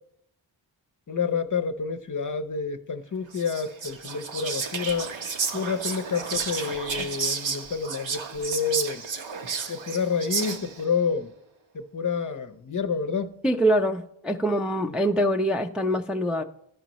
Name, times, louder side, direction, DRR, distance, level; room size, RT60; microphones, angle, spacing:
voice 1, 1.1-5.1 5.5-9.0 9.7-11.3 11.7-13.3 14.8-14.9, left 5 dB, 40° left, 0.7 m, -29 dB
Whispering, 3.3-10.9, right 5 dB, 70° right, 1.0 m, -32 dB
voice 2, 13.4-16.4, equal, ahead, 0.5 m, -24 dB
14.5 x 5.1 x 3.0 m
wide cardioid pair, 120°, 48 cm